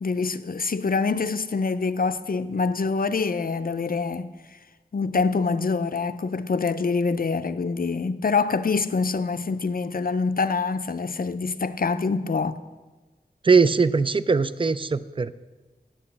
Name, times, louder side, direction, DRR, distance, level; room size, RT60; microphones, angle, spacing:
voice 1, 0.0-4.3 4.9-12.6, left 4 dB, 60° left, 0.5 m, -25 dB
voice 2, 13.4-15.3, right 4 dB, 30° right, 0.4 m, -20 dB
9.8 x 8.6 x 7.1 m
wide cardioid pair, 70°, 17 cm